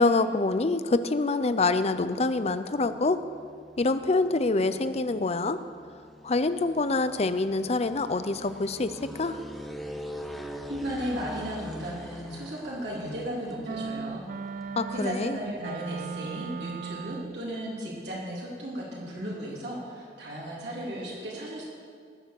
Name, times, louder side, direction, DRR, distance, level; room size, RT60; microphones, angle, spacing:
voice 1, 0.0-3.2 3.8-5.6 6.2-9.4 14.8-15.4, left 3 dB, 35° left, 12 dB, 0.6 m, -26 dB
sound 1, 2.2-17.5, equal, ahead, 0.9 m, -45 dB
voice 2, 10.7-21.6, equal, 70° right, -5 dB, 3.5 m, -35 dB
sound 2, 13.7-17.5, right 5 dB, 45° right, 0.3 m, -37 dB
19.5 x 6.9 x 7.1 m, 2.1 s
head